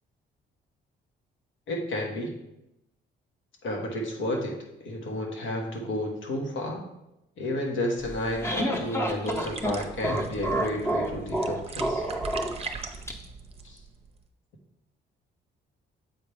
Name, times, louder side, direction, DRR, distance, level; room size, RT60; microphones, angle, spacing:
voice 1, 1.7-2.3 3.6-6.9 7.4-12.0 13.6-13.8, left 1 dB, 80° left, 1 dB, 1.4 m, -31 dB
sound 1, 8.0-13.1, right 1 dB, 15° left, 0.9 m, -29 dB
sound 2, 9.2-14.3, right 4 dB, 30° right, 0.7 m, -41 dB
7.7 x 4.5 x 3.4 m, 0.88 s
cardioid pair, 90°, 20 cm